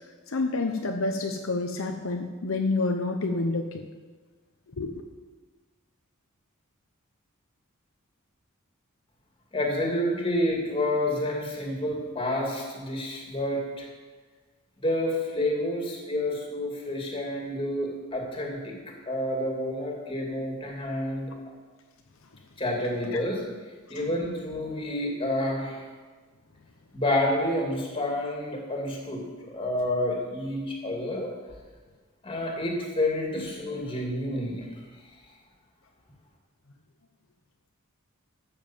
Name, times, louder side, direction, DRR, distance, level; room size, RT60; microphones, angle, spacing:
voice 1, 0.3-3.8 4.8-5.0 23.1-23.2 24.0-24.1 33.4-33.5, left 3 dB, 70° left, 4 dB, 0.8 m, -28 dB
voice 2, 9.5-13.9 14.8-18.7 19.1-21.3 22.6-23.4 23.9-25.8 26.9-31.3 32.2-34.7, left 1 dB, 25° left, 0 dB, 2.5 m, -29 dB
13.0 x 7.2 x 7.3 m, 1.4 s
head